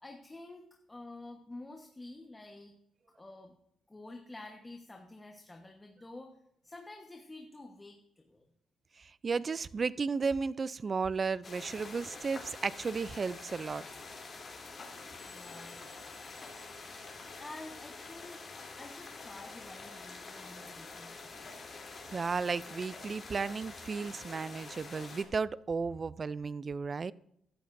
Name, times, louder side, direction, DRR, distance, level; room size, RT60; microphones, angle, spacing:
voice 1, 0.0-2.7 3.1-3.6 3.9-6.3 6.6-8.5 15.2-15.8 16.9-18.5 18.8-21.7, left 2 dB, 15° left, 1.2 m, -49 dB
voice 2, 9.0-13.8 22.1-27.1, right 5 dB, 35° right, 0.4 m, -34 dB
sound 1, 11.4-25.2, left 3 dB, 40° left, 3.1 m, -47 dB
sound 2, 15.2-17.7, left 6 dB, 55° left, 3.0 m, -60 dB
14.5 x 12.5 x 2.6 m
cardioid pair, 90°, 0 cm